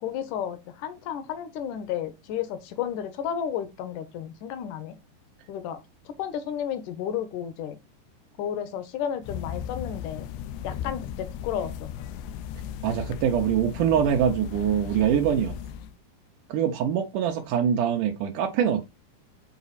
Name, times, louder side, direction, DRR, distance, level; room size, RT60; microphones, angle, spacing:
voice 1, 0.0-5.0 5.5-7.8 8.4-10.3 10.6-11.9, left 9 dB, 70° left, 2.1 m, -32 dB
sound 1, 9.2-15.9, left 9 dB, 85° left, 2.7 m, -36 dB
voice 2, 12.8-15.5 16.5-18.9, right 9 dB, 85° right, 1.8 m, -24 dB
7.9 x 4.1 x 4.1 m
omnidirectional pair, 4.8 m